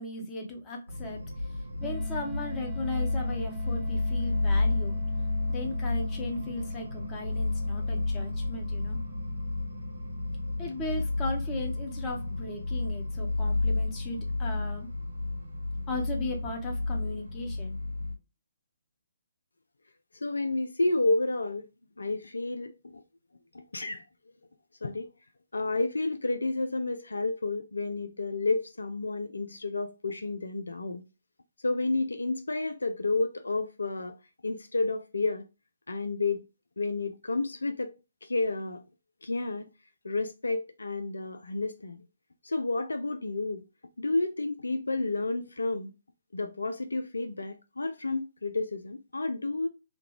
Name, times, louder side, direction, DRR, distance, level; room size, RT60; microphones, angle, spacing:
voice 1, 0.0-5.0 5.5-9.0 10.6-14.9 15.9-17.8, left 2 dB, 20° left, 1.0 m, -37 dB
sound 1, 0.9-18.1, left 2 dB, 75° right, 1.0 m, -31 dB
sound 2, 1.8-12.5, equal, 10° right, 0.3 m, -47 dB
voice 2, 20.1-21.7 22.0-23.0 23.5-24.0 24.8-25.1 25.5-31.0 31.6-34.2 34.4-35.4 35.9-36.4 36.8-37.9 38.2-38.8 39.2-39.7 40.0-42.0 42.4-43.6 44.0-45.9 46.3-49.7, left 3 dB, 75° left, 0.4 m, -30 dB
3.6 x 2.2 x 3.2 m
figure-of-eight pair, 135°, 0 cm